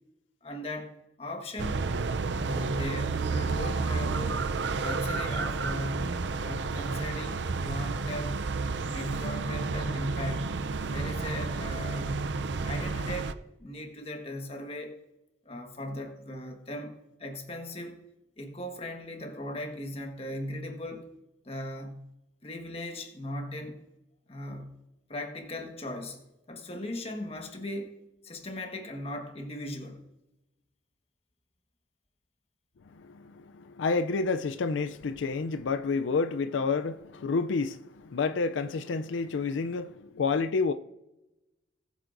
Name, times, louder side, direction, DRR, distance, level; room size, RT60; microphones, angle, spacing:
voice 1, 0.4-0.9 1.2-1.8 2.3-4.5 4.8-8.4 8.9-10.5 10.9-12.2 12.6-15.0 15.4-18.0 18.4-21.1 21.4-22.1 22.4-23.8 24.3-24.8 25.1-26.2 26.5-28.0 28.2-30.0, left 1 dB, 35° left, 1.4 m, -38 dB
sound 1, 1.6-13.3, right 4 dB, 70° right, 0.5 m, -31 dB
voice 2, 32.9-40.7, left 4 dB, 85° left, 0.4 m, -29 dB
19.5 x 8.2 x 2.6 m
head